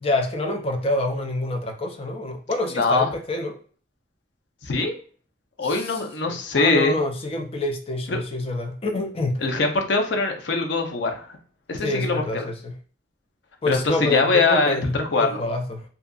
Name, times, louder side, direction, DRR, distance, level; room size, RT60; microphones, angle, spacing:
voice 1, 0.0-3.6 5.6-6.0 6.3-9.4 11.8-12.7 13.6-15.9, left 2 dB, 35° left, 3 dB, 0.4 m, -27 dB
voice 2, 2.8-3.1 4.6-4.9 5.6-7.0 8.1-8.2 9.4-11.3 11.7-12.2 13.7-15.4, left 3 dB, 90° left, 3 dB, 0.6 m, -22 dB
2.7 x 2.3 x 2.3 m, 0.43 s
head